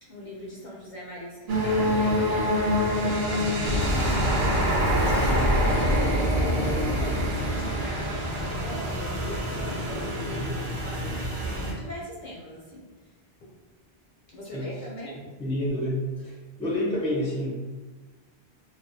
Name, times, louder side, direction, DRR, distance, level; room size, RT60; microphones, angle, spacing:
voice 1, 0.0-13.5 14.3-15.2, equal, 55° left, -5 dB, 0.6 m, -40 dB
sound 1, 1.5-11.7, equal, 60° right, 0.7 m, -27 dB
Boom, 3.7-8.9, equal, 85° left, 0.8 m, -27 dB
voice 2, 15.4-16.3 16.6-17.6, left 1 dB, 10° left, -5 dB, 0.3 m, -28 dB
2.3 x 2.2 x 2.6 m, 1.2 s
omnidirectional pair, 1.1 m